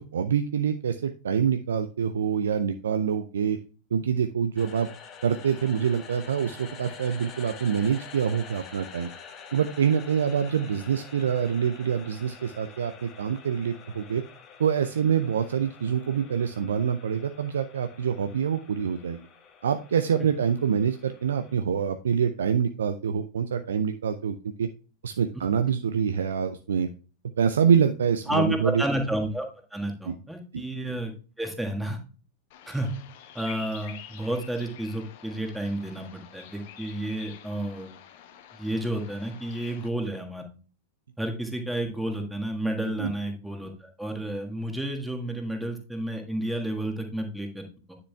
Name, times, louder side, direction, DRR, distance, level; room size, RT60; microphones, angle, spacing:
voice 1, 0.0-3.6 3.9-4.9 5.2-9.1 9.5-14.2 14.6-19.2 19.6-24.7 25.0-26.9 27.4-28.8 30.1-30.2 43.0-43.1, right 7 dB, 65° right, 9 dB, 0.4 m, -26 dB
sound 1, 4.6-21.6, left 6 dB, 30° left, 1.4 m, -47 dB
voice 2, 28.3-31.1 31.4-32.0 32.7-32.9 33.3-37.9 38.6-40.4 41.2-48.0, right 1 dB, 5° right, 2 dB, 1.6 m, -31 dB
Bird vocalization bird call bird song, 32.5-39.9, left 10 dB, 50° left, 0.9 m, -48 dB
9.7 x 6.7 x 2.3 m, 0.37 s
figure-of-eight pair, 90°, 0 cm